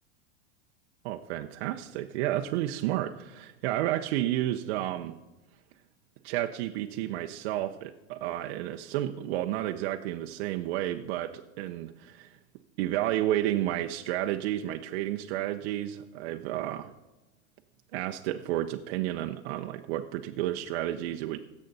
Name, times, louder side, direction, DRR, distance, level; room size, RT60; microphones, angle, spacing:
voice 1, 1.0-5.2 6.2-12.3 12.8-16.9 17.9-21.4, right 13 dB, 60° right, 5 dB, 0.7 m, -31 dB
17.0 x 7.4 x 4.1 m, 1.1 s
hypercardioid pair, 110°, 35 cm